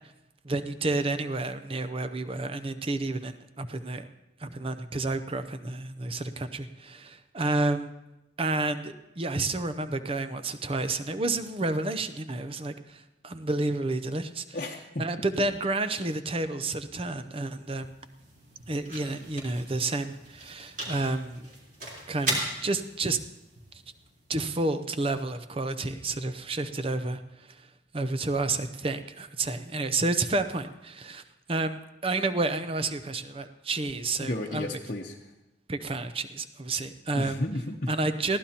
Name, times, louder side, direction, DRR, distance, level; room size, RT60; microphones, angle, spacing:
voice 1, 0.4-4.1 4.4-7.9 8.4-14.6 15.0-17.9 18.7-21.5 22.1-23.2 24.3-27.6 27.9-31.2 31.5-34.7 35.7-37.4 37.9-38.4, right 2 dB, 30° right, 11 dB, 0.6 m, -30 dB
voice 2, 14.5-15.0 34.2-35.2 37.1-37.9, left 1 dB, 45° left, -2 dB, 0.9 m, -32 dB
sound 1, 17.3-25.4, right 1 dB, 45° right, 3.9 m, -39 dB
22.0 x 16.0 x 2.9 m, 0.97 s
head